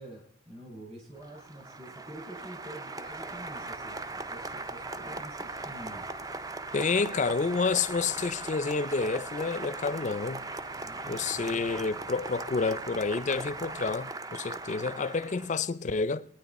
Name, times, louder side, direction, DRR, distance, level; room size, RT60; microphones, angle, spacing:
voice 1, 0.0-6.1 10.8-11.6, right 1 dB, 40° right, 5.5 m, -47 dB
Applause, 1.2-15.6, right 3 dB, 20° right, 0.4 m, -39 dB
sound 1, 3.0-14.0, equal, 65° right, 2.1 m, -56 dB
voice 2, 6.7-10.5 11.1-16.3, left 4 dB, 40° left, 0.4 m, -29 dB
21.5 x 9.6 x 4.1 m
head